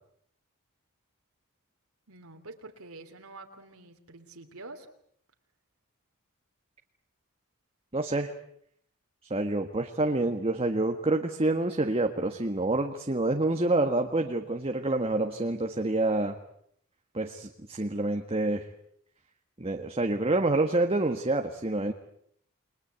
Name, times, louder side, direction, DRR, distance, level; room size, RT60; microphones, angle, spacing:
voice 1, 2.1-4.9, right 2 dB, 75° right, 4 dB, 3.2 m, -47 dB
voice 2, 7.9-8.3 9.3-16.4 17.1-18.7 19.6-21.9, right 2 dB, 25° right, 4 dB, 1.7 m, -27 dB
30.0 x 22.0 x 8.3 m, 0.69 s
head